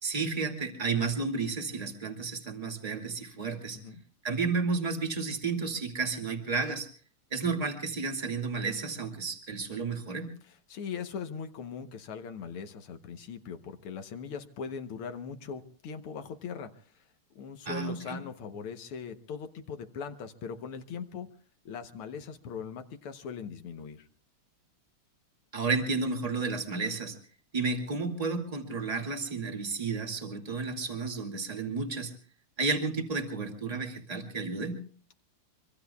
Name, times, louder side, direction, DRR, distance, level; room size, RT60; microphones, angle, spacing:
voice 1, 0.0-3.8 4.2-6.9 7.3-10.3 17.7-18.2 25.5-27.2 27.5-32.1 32.6-34.8, right 4 dB, 15° right, 4 dB, 2.2 m, -32 dB
voice 2, 10.4-17.1 17.4-21.3 21.7-24.1, left 6 dB, 80° left, 7 dB, 1.9 m, -40 dB
25.0 x 24.0 x 2.3 m, 0.43 s
omnidirectional pair, 2.4 m